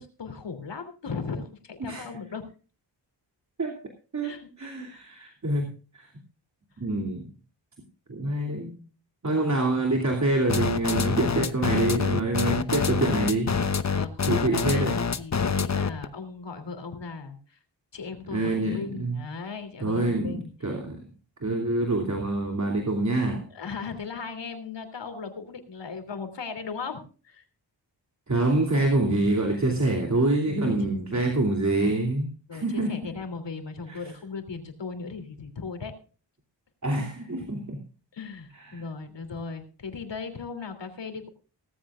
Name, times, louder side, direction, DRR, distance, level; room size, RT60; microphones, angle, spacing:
voice 1, 0.0-2.4 4.2-5.0 13.9-17.6 17.9-20.5 23.5-27.4 28.3-28.5 29.5-29.8 30.5-30.6 30.9-31.3 32.5-35.9 38.1-41.3, left 4 dB, 70° left, 8 dB, 3.1 m, -37 dB
voice 2, 4.1-6.1 6.8-7.3 8.1-8.8 9.2-13.8 14.2-15.0 18.3-19.2 19.8-21.1 21.4-23.5 28.3-33.1 33.9-34.1 36.8-37.8 38.5-38.8, right 2 dB, 40° right, 2 dB, 2.8 m, -26 dB
sound 1, 10.5-16.0, left 5 dB, 35° left, 0.9 m, -26 dB
18.0 x 14.5 x 2.4 m, 0.36 s
wide cardioid pair, 80°, 44 cm